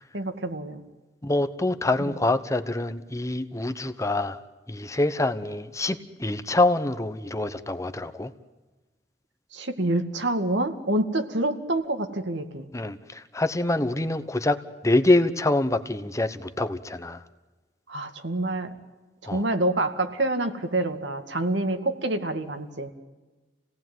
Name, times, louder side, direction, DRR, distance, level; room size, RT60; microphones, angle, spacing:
voice 1, 0.1-0.8 2.1-2.2 9.5-12.7 17.9-18.7 19.2-22.9, right 2 dB, 80° right, 7 dB, 2.2 m, -27 dB
voice 2, 1.2-4.4 4.7-8.3 12.7-17.2 19.3-19.4, left 2 dB, 15° left, 10 dB, 1.0 m, -25 dB
28.0 x 18.0 x 9.4 m, 1.2 s
head